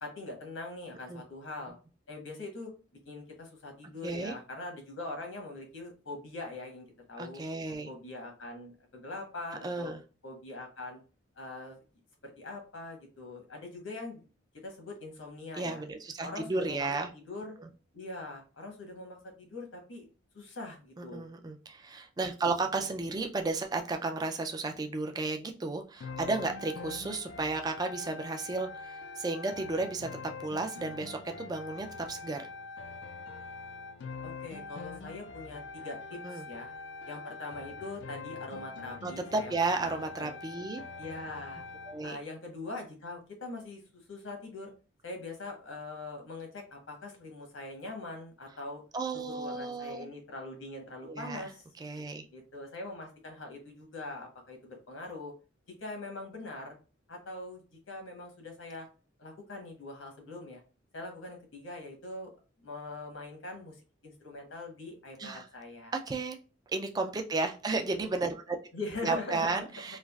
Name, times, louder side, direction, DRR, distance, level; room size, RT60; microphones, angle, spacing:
voice 1, 0.0-1.8 2.1-2.7 3.0-7.4 7.9-10.0 10.2-11.0 11.4-11.8 12.4-14.2 14.6-15.8 16.2-17.5 17.9-20.1 20.3-21.3 22.7-22.9 34.2-36.7 37.0-40.3 41.0-41.6 42.0-44.7 45.0-48.8 49.1-51.6 52.3-55.3 55.8-56.8 57.1-57.6 57.9-58.9 59.2-60.6 60.9-62.3 62.6-65.9 67.9-68.1 68.7-70.0, left 2 dB, 85° left, 2 dB, 1.1 m, -42 dB
voice 2, 4.0-4.3 7.2-7.9 9.6-10.0 15.6-17.1 17.6-17.7 21.0-30.1 30.4-32.5 36.2-36.4 39.0-40.8 41.9-42.2 48.9-50.0 51.0-51.5 51.8-52.3 65.2-65.5 65.9-66.4 66.7-68.6 69.0-70.0, right 3 dB, 20° right, 4 dB, 0.3 m, -33 dB
sound 1, 26.0-42.0, left 4 dB, 65° left, 0.3 m, -44 dB
3.2 x 2.4 x 2.3 m, 0.34 s
head